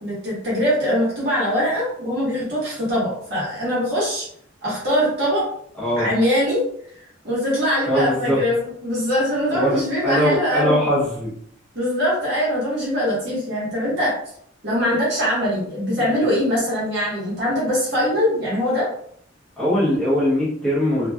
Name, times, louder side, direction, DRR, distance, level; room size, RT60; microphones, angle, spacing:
voice 1, 0.0-4.3 4.6-5.5 6.0-6.6 6.9-10.8 11.7-14.1 14.6-18.9, equal, 60° right, -7 dB, 1.2 m, -22 dB
voice 2, 5.8-6.1 7.9-8.4 9.5-11.3 16.0-16.1 19.6-21.1, equal, 5° left, -10 dB, 0.8 m, -21 dB
3.0 x 2.5 x 2.2 m, 0.66 s
head